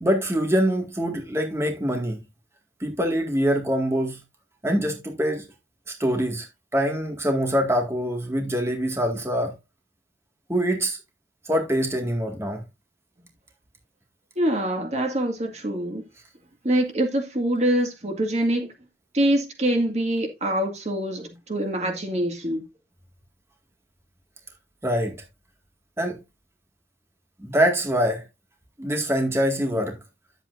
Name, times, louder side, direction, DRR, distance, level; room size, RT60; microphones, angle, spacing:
voice 1, 0.0-2.2 2.8-4.2 4.6-5.4 6.0-9.5 10.5-11.0 11.5-12.6 24.8-25.2 26.0-26.2 27.4-28.2 28.8-30.0, equal, 15° right, 1.9 m, -24 dB
voice 2, 14.4-16.0 16.6-18.7 19.1-22.6, right 1 dB, 40° right, 2.0 m, -24 dB
10.5 x 8.1 x 2.6 m
head